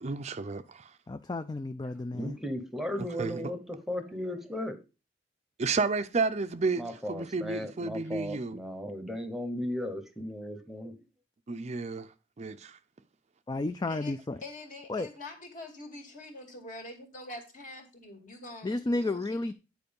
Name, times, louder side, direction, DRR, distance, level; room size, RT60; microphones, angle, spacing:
voice 1, 0.0-0.9 3.2-3.4 5.6-8.6 11.5-12.1 12.4-12.6, right 4 dB, 40° right, 0.5 m, -31 dB
voice 2, 1.1-2.4 13.5-14.4 14.9-15.1 18.6-19.5, left 2 dB, 20° left, 0.4 m, -32 dB
voice 3, 2.1-4.8 6.8-10.9, left 1 dB, ahead, 1.0 m, -36 dB
voice 4, 14.4-18.8 19.1-19.5, left 2 dB, 45° left, 2.3 m, -45 dB
9.2 x 4.7 x 5.3 m
head